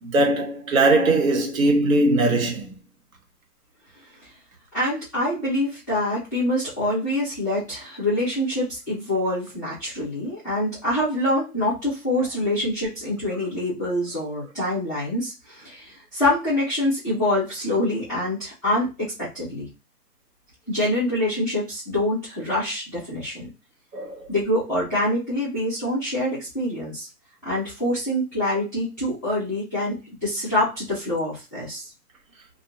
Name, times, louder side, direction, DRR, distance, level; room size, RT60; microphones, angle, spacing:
voice 1, 0.0-2.7 23.9-24.3, right 2 dB, 55° right, 1.0 m, -20 dB
voice 2, 4.7-19.7 20.7-23.5 24.3-27.1 27.4-31.8, left 1 dB, 10° left, 0.5 m, -25 dB
2.7 x 2.2 x 2.4 m
hypercardioid pair, 155°, 48 cm